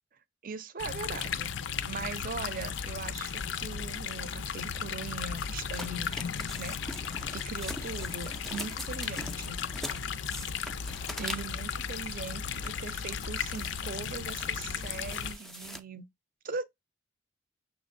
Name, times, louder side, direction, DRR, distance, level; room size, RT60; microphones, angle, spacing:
voice 1, 0.4-1.5 1.9-6.1 6.6-6.8 7.3-9.6 11.2-16.1 16.4-16.6, right 4 dB, 50° right, 0.6 m, -40 dB
sound 1, 0.8-15.3, left 7 dB, 70° left, 0.5 m, -35 dB
sound 2, 5.3-11.7 12.3-12.9 13.2-15.8, equal, ahead, 0.5 m, -43 dB
6.4 x 3.0 x 2.5 m
head